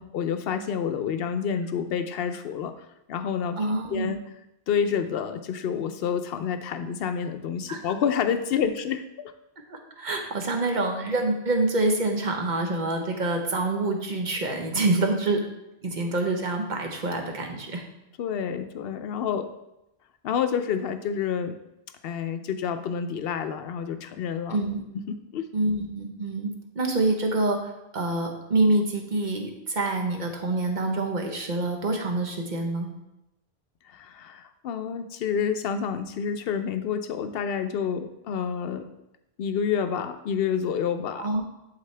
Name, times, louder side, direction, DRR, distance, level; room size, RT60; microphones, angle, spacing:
voice 1, 0.1-2.7 3.1-3.6 3.9-4.2 4.7-9.3 18.2-19.5 20.2-21.6 22.0-24.6 25.1-25.5 33.9-38.8 39.4-41.3, left 7 dB, 65° left, 9 dB, 0.8 m, -28 dB
voice 2, 3.6-4.1 7.7-7.8 9.7-15.4 15.8-17.8 24.5-24.8 25.5-26.5 26.7-32.9 41.2-41.4, right 2 dB, 45° right, 3 dB, 1.1 m, -26 dB
11.0 x 4.2 x 3.3 m, 0.89 s
omnidirectional pair, 1.1 m